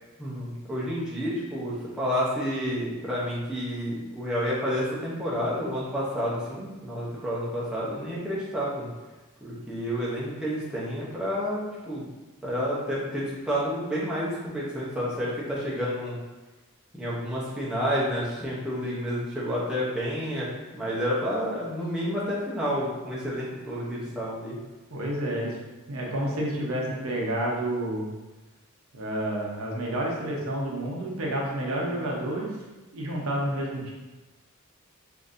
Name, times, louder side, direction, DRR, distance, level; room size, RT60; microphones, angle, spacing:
voice 1, 0.2-8.9 9.4-12.0 12.4-16.2 16.9-20.5 20.7-24.6, equal, 5° right, -8 dB, 0.7 m, -30 dB
voice 2, 24.9-25.6 25.9-28.1 28.9-32.5 32.9-33.9, right 1 dB, 70° right, -2 dB, 0.7 m, -29 dB
3.7 x 2.7 x 2.5 m, 1.1 s
head